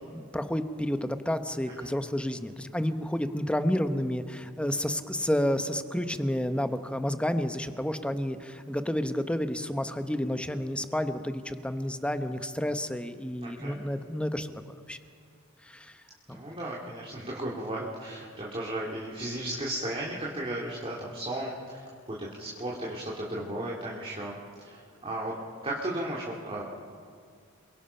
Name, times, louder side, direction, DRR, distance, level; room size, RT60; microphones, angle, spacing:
voice 1, 0.0-14.5 14.9-15.0 15.7-15.9 16.3-16.4, left 1 dB, 5° left, 8 dB, 1.0 m, -30 dB
voice 2, 13.4-13.8 16.3-25.3 25.6-26.6, right 1 dB, 30° right, -4 dB, 2.6 m, -35 dB
28.0 x 22.5 x 5.7 m, 2.2 s
head